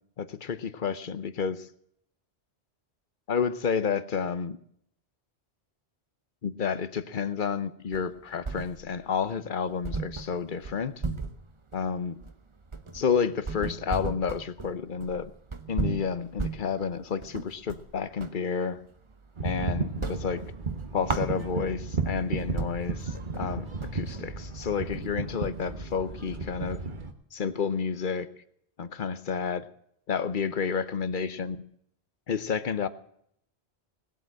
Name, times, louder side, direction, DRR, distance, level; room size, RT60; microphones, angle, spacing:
voice 1, 0.2-1.7 3.3-4.6 6.4-10.9 11.7-12.2 12.9-15.3 15.7-18.8 19.4-20.4 20.9-23.6 23.9-26.8 27.3-28.3 28.8-29.7 30.1-31.6 32.3-32.9, left 6 dB, 50° left, 14 dB, 1.0 m, -30 dB
sound 1, 7.9-9.1 9.4-9.5 9.8-18.4 18.8-19.6 19.9-21.9 22.3-22.4 22.6-26.7, right 4 dB, 30° right, 0.9 m, -36 dB
sound 2, 19.4-27.1, right 4 dB, 45° right, 1.4 m, -34 dB
19.0 x 8.1 x 7.6 m, 0.71 s
omnidirectional pair, 1.1 m